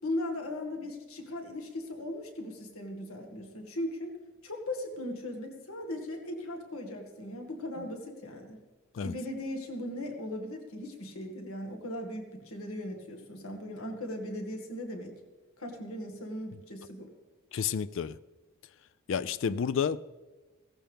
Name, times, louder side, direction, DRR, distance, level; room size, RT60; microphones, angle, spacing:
voice 1, 0.0-4.1 4.4-8.6 9.0-15.1 15.6-17.1 19.4-19.6, left 1 dB, 80° left, 1.9 m, -38 dB
voice 2, 17.5-18.2 19.1-20.0, left 7 dB, 60° left, 0.3 m, -30 dB
17.0 x 14.5 x 3.5 m
head